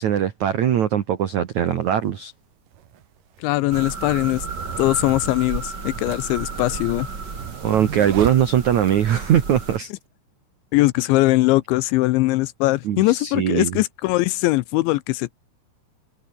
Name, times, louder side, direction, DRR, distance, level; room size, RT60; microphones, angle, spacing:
voice 1, 0.0-2.3 7.6-9.9 12.8-13.8, right 10 dB, 85° right, 1.6 m, -21 dB
sound 1, 1.6-1.7 2.7-9.1, right 10 dB, 55° right, 2.9 m, -36 dB
voice 2, 3.4-4.5 4.8-7.1 10.7-15.3, left 19 dB, 80° left, 2.8 m, -21 dB
sound 2, 3.7-9.8, right 4 dB, 25° right, 3.1 m, -33 dB
omnidirectional pair, 5.7 m